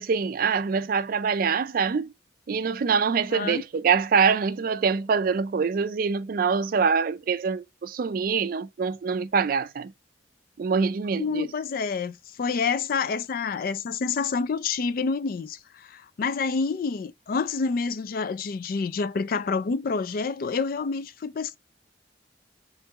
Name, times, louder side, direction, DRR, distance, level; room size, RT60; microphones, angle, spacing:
voice 1, 0.0-2.1 2.5-9.9 10.6-11.5, right 5 dB, 50° right, 0.4 m, -24 dB
voice 2, 3.3-3.6 11.2-21.6, left 5 dB, 55° left, 0.4 m, -28 dB
4.5 x 3.8 x 2.8 m
head